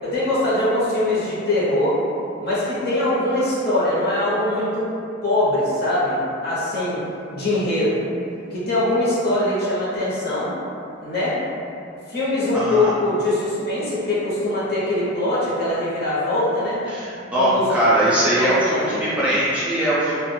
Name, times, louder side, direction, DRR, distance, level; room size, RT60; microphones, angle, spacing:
voice 1, 0.0-2.0 2.4-4.9 5.2-7.0 7.3-8.1 8.5-10.5 11.0-11.4 12.1-16.8 17.3-17.7 18.4-19.0, left 1 dB, 55° left, -9 dB, 0.8 m, -22 dB
voice 2, 12.5-12.9 16.9-20.2, right 1 dB, 5° right, -10 dB, 0.4 m, -21 dB
2.4 x 2.1 x 3.3 m, 2.6 s
head